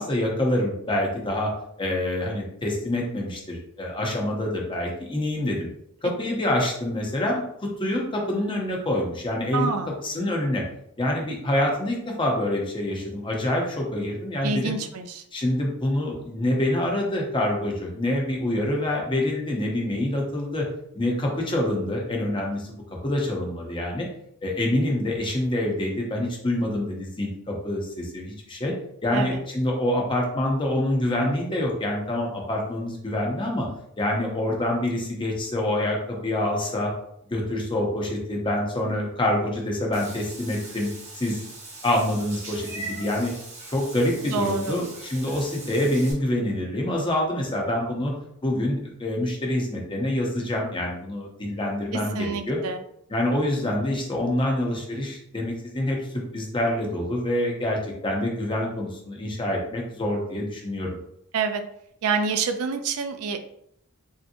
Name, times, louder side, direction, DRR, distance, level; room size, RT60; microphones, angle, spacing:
voice 1, 0.0-1.5 1.8-5.7 6.0-9.8 10.0-10.6 11.0-14.7 15.3-20.7 20.9-22.8 23.0-24.1 24.4-28.7 29.0-33.7 34.0-36.9 37.3-40.9 41.2-41.4 41.8-43.3 43.7-48.1 48.4-52.6 53.1-56.0 56.3-61.0, left 1 dB, 20° left, -1 dB, 0.6 m, -26 dB
voice 2, 9.5-9.9 14.4-15.2 29.1-29.4 44.3-44.8 51.9-52.8 61.3-61.6 62.0-63.4, right 5 dB, 75° right, 7 dB, 0.4 m, -27 dB
Meow / Water / Bathtub (filling or washing), 39.9-46.1, right 2 dB, 30° right, 1.0 m, -40 dB
3.3 x 2.7 x 2.6 m, 0.73 s
head